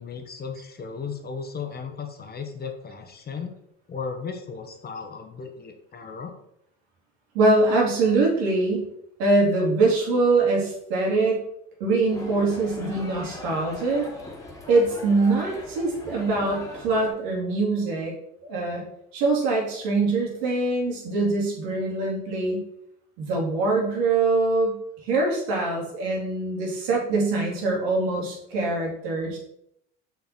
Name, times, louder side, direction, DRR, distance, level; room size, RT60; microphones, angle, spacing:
voice 1, 0.0-3.5 3.9-6.3, left 5 dB, 30° left, 5 dB, 1.3 m, -35 dB
voice 2, 7.3-8.9 9.2-11.4 11.8-14.1 14.7-18.1 18.4-18.8 19.1-22.6 23.2-24.8 25.0-29.4, right 3 dB, 80° right, -2 dB, 3.0 m, -23 dB
sound 1, 12.1-17.1, left 1 dB, 10° left, 2.0 m, -40 dB
5.9 x 5.7 x 4.4 m, 0.76 s
supercardioid pair, 100°, 29 cm